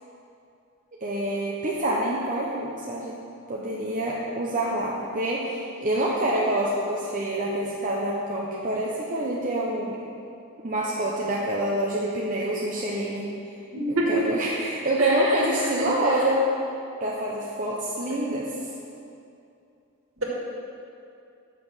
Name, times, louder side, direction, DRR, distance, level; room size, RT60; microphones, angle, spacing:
voice 1, 1.0-3.2 3.5-10.0 10.6-13.3 13.9-16.5 17.0-18.5, right 1 dB, 35° right, -5 dB, 0.8 m, -26 dB
voice 2, 13.7-14.1 15.0-15.4 15.8-15.9 18.1-18.2, right 1 dB, 65° right, -3 dB, 1.9 m, -27 dB
6.9 x 6.0 x 7.1 m, 2.6 s
head